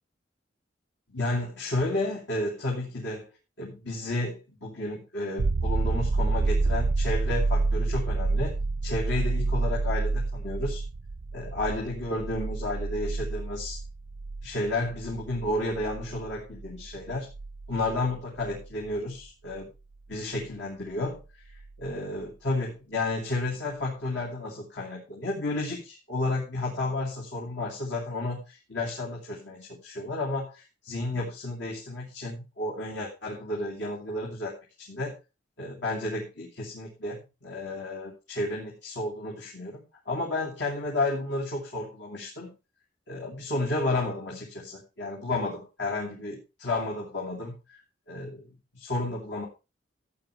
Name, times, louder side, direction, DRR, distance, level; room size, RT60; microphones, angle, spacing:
voice 1, 1.1-3.3 3.6-8.5 8.8-10.8 11.3-13.8 14.4-17.3 17.7-19.7 20.1-21.2 21.8-34.5 34.8-35.1 35.6-42.5 43.1-47.8 48.1-48.5 48.7-49.5, left 2 dB, 65° left, -3 dB, 2.9 m, -32 dB
sound 1, 5.4-18.9 21.6-21.7, right 3 dB, 80° right, 0.5 m, -29 dB
14.0 x 9.1 x 3.3 m, 0.28 s
head